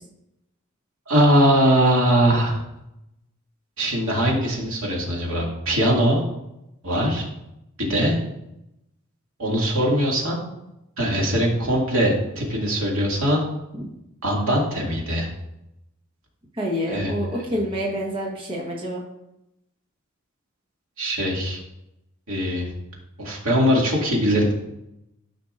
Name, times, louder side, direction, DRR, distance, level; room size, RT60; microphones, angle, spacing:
voice 1, 1.1-2.6 3.8-6.2 6.8-7.3 7.8-8.2 9.4-10.4 11.0-13.4 14.2-15.3 16.9-17.1 21.0-21.6 22.3-22.7 23.2-24.5, equal, 75° right, -3 dB, 2.3 m, -21 dB
voice 2, 16.5-19.0, equal, 25° right, -3 dB, 1.3 m, -27 dB
13.0 x 5.7 x 2.5 m, 0.86 s
head